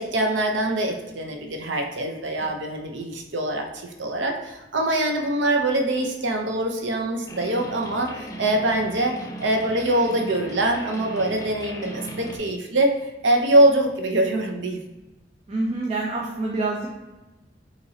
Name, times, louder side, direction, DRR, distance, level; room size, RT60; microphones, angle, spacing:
voice 1, 0.0-12.9 13.2-14.8, right 1 dB, 75° right, 3 dB, 0.7 m, -23 dB
sound 1, 7.3-12.4, right 1 dB, 15° left, 0.5 m, -37 dB
voice 2, 15.5-16.9, right 2 dB, 35° right, -2 dB, 0.5 m, -27 dB
5.7 x 3.0 x 2.7 m, 1.1 s
head